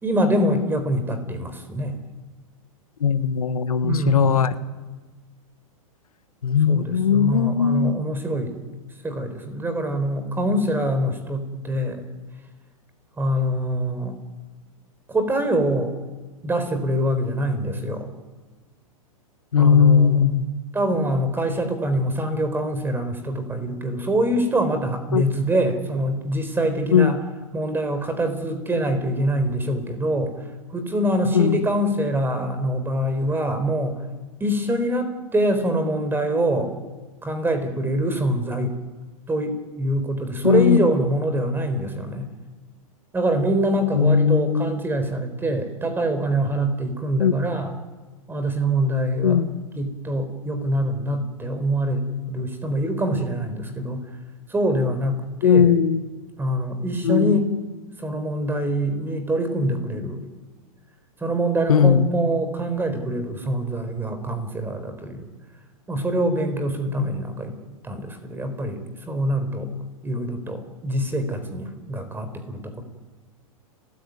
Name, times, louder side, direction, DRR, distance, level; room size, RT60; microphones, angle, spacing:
voice 1, 0.0-1.9 3.8-4.3 6.7-8.6 9.0-12.1 13.2-14.1 15.1-15.9 16.4-18.1 19.6-20.3 20.7-27.2 27.5-30.3 30.7-34.0 34.4-36.7 37.2-38.7 39.3-42.3 43.1-47.7 48.3-49.4 49.8-52.0 52.3-54.0 54.5-55.8 56.4-57.5 58.0-60.2 61.2-65.3 65.9-67.6 67.8-68.8 69.1-69.7 70.0-72.8, right 1 dB, 10° right, 9 dB, 4.2 m, -24 dB
voice 2, 3.0-4.5 6.4-7.9 19.5-20.5 25.1-25.2 26.9-27.1 31.3-31.7 40.4-40.9 43.9-44.7 47.2-47.3 49.2-49.6 55.4-56.0 57.0-57.4 61.7-62.1 67.0-67.1, left 7 dB, 85° left, 12 dB, 1.4 m, -18 dB
30.0 x 14.5 x 9.6 m, 1.3 s
hypercardioid pair, 120°, 18 cm